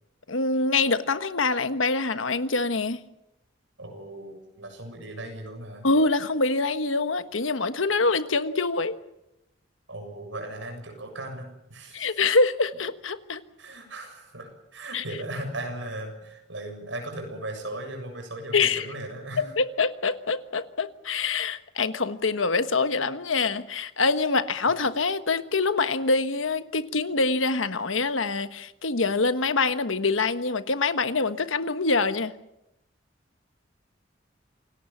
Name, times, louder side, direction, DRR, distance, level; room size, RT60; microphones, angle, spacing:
voice 1, 0.3-3.0 5.8-9.0 11.9-13.4 14.9-15.0 18.5-18.9 19.4-32.3, left 3 dB, 90° left, 11 dB, 1.3 m, -25 dB
voice 2, 3.8-5.9 9.9-12.1 13.6-19.5, right 1 dB, 75° right, 4 dB, 7.3 m, -37 dB
27.5 x 18.5 x 7.3 m, 0.87 s
head